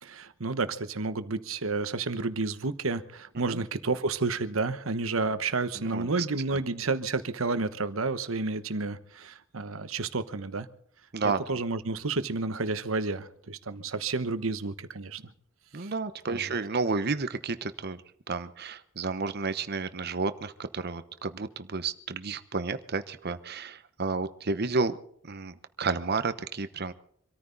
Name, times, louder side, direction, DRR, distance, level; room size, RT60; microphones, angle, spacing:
voice 1, 0.0-10.7 11.2-15.2 15.8-15.9 16.3-16.6, right 3 dB, 85° right, 11 dB, 1.1 m, -31 dB
voice 2, 5.8-6.6 11.1-11.4 15.7-18.0 18.3-25.0 25.2-26.9, right 4 dB, 50° right, 11 dB, 1.0 m, -31 dB
25.0 x 14.0 x 4.0 m, 0.64 s
head